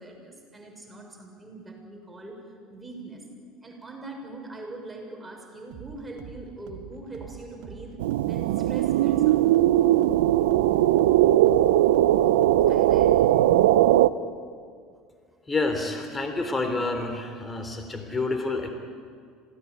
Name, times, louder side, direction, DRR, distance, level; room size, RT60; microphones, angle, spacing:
voice 1, 0.0-3.3 3.6-9.4 12.6-13.4, right 2 dB, 15° right, 1 dB, 6.7 m, -42 dB
sound 1, 5.7-13.4, right 7 dB, 60° right, 2.5 m, -45 dB
sound 2, 8.0-14.1, right 13 dB, 80° right, 0.7 m, -19 dB
voice 2, 15.5-18.7, left 3 dB, 20° left, 6 dB, 3.5 m, -28 dB
26.5 x 18.0 x 9.6 m, 2.1 s
hypercardioid pair, 75°, 0 cm